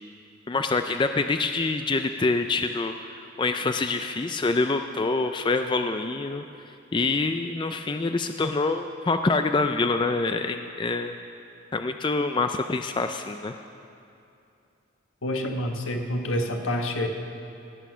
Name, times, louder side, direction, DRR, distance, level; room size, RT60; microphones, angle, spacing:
voice 1, 0.5-6.4 6.9-11.2 11.7-13.6, left 3 dB, 25° left, 7 dB, 0.3 m, -26 dB
voice 2, 15.2-17.1, left 1 dB, 80° left, 3 dB, 1.3 m, -27 dB
17.0 x 9.2 x 6.2 m, 2.7 s
head